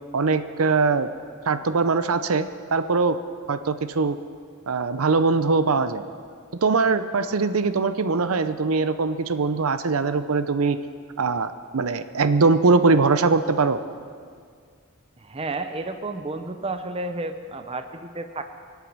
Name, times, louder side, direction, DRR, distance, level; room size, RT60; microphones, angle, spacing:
voice 1, 0.1-1.1 1.5-3.2 3.5-4.2 4.7-6.0 6.6-10.8 11.2-13.8, right 4 dB, 80° right, 11 dB, 0.6 m, -21 dB
voice 2, 15.2-18.4, right 2 dB, 25° right, 8 dB, 0.7 m, -31 dB
24.0 x 8.2 x 6.1 m, 2.1 s
head